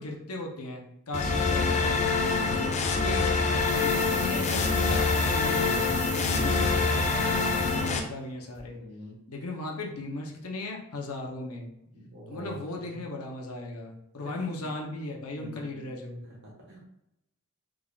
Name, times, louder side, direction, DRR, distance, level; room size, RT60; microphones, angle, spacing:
voice 1, 0.0-2.0 2.5-3.3 3.7-8.8 9.3-11.7 12.3-16.2, left 2 dB, 75° left, 0 dB, 0.8 m, -37 dB
sound 1, 1.1-8.0, left 4 dB, 30° left, 0.4 m, -25 dB
voice 2, 2.3-2.6 6.3-6.7 8.7-9.1 11.9-13.0 14.3-14.7 15.3-15.8 16.4-16.9, equal, 50° right, -3 dB, 1.3 m, -45 dB
sound 2, 3.5-8.3 8.5-8.6, left 1 dB, 5° left, 1.3 m, -39 dB
3.6 x 3.5 x 2.3 m, 0.84 s
head